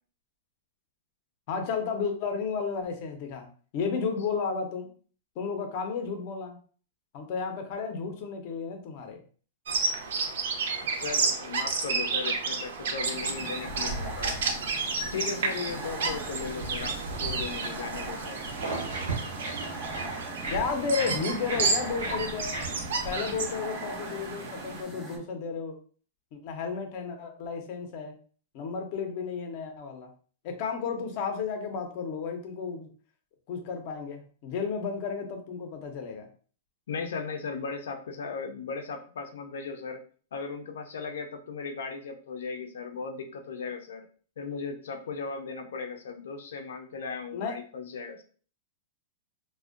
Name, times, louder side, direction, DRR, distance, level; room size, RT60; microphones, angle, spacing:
voice 1, 1.5-3.5 3.7-4.9 5.4-6.6 7.1-9.2 20.5-22.5 23.0-25.7 26.3-28.1 28.5-30.1 30.4-32.9 33.5-36.3 47.3-47.5, left 5 dB, 35° left, 4 dB, 0.5 m, -32 dB
Bird vocalization bird call bird song, 9.7-24.8, right 4 dB, 75° right, 0.5 m, -32 dB
voice 2, 10.8-14.4 15.1-18.4 36.9-40.0 40.3-44.1 44.4-48.2, left 5 dB, 90° left, 5 dB, 0.4 m, -37 dB
sound 1, 13.0-25.2, right 1 dB, 15° right, 0.4 m, -41 dB
sound 2, 18.5-23.6, right 3 dB, 90° right, 1.0 m, -37 dB
2.5 x 2.1 x 2.4 m, 0.42 s
supercardioid pair, 170°, 0 cm